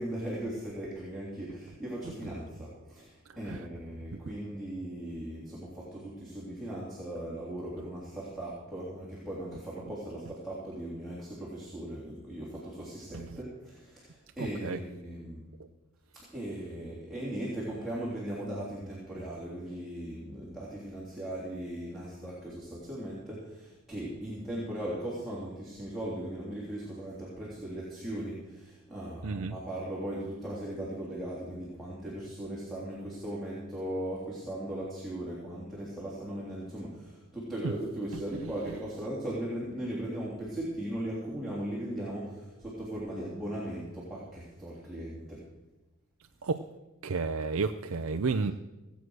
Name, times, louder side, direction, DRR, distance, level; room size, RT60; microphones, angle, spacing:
voice 1, 0.0-15.4 16.1-45.4, right 1 dB, ahead, -8 dB, 3.2 m, -38 dB
voice 2, 29.2-29.5 46.4-46.6 47.0-48.5, right 4 dB, 85° right, 7 dB, 0.5 m, -30 dB
17.5 x 8.1 x 6.3 m, 1.1 s
head